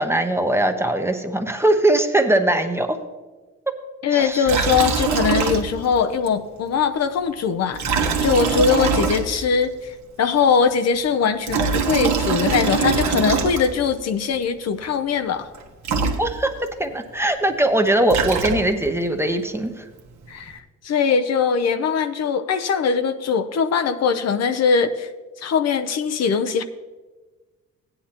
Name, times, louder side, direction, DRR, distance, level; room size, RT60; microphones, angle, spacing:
voice 1, 0.0-3.0 4.1-4.5 16.2-19.8, right 1 dB, 10° right, 6 dB, 0.9 m, -21 dB
voice 2, 4.0-15.5 20.3-25.1 25.4-26.6, left 6 dB, 55° left, 9 dB, 0.7 m, -21 dB
Liquid, 4.4-6.0 6.3-6.4 7.7-9.6 11.3-13.9 15.5-15.6 15.8-16.7 17.8-18.9, right 5 dB, 70° right, 1.3 m, -23 dB
16.0 x 9.6 x 2.9 m, 1.3 s
cardioid pair, 90°, 30 cm